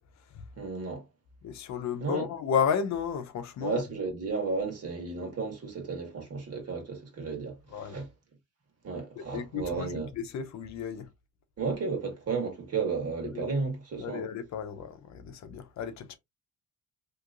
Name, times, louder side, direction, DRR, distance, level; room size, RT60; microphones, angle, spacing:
voice 1, 0.6-1.0 2.0-2.3 3.6-8.1 8.8-10.1 11.6-14.2, right 4 dB, 55° right, 1.7 m, -33 dB
voice 2, 1.4-3.8 7.7-8.0 9.2-11.1 13.3-13.5 14.0-16.2, left 7 dB, 65° left, 0.7 m, -33 dB
3.0 x 2.9 x 2.4 m
cardioid pair, 90°, 30 cm